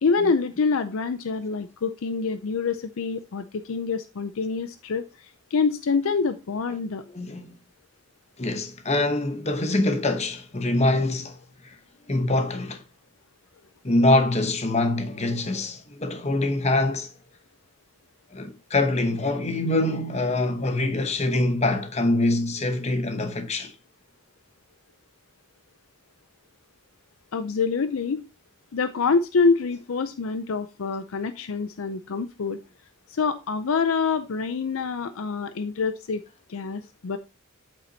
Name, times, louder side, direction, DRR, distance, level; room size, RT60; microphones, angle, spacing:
voice 1, 0.0-7.0 27.3-28.2 28.7-32.6 33.1-37.2, left 4 dB, 65° left, 0.5 m, -26 dB
voice 2, 7.1-7.5 8.4-11.4 11.6-11.8 12.1-12.8 13.8-17.1 18.3-23.7, left 2 dB, 30° left, 0.9 m, -24 dB
8.3 x 7.0 x 2.7 m
head